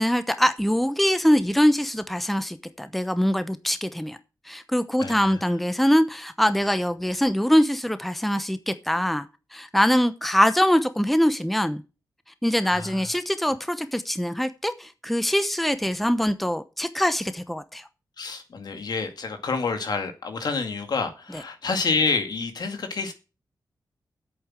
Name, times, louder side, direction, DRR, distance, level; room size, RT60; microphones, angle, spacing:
voice 1, 0.0-4.2 4.5-9.3 9.5-11.8 12.4-17.8, equal, ahead, 0.9 m, -23 dB
voice 2, 5.0-5.4 12.6-13.1 18.2-23.1, left 4 dB, 70° left, 2.2 m, -28 dB
8.7 x 7.9 x 7.4 m
wide cardioid pair, 95°, 7 cm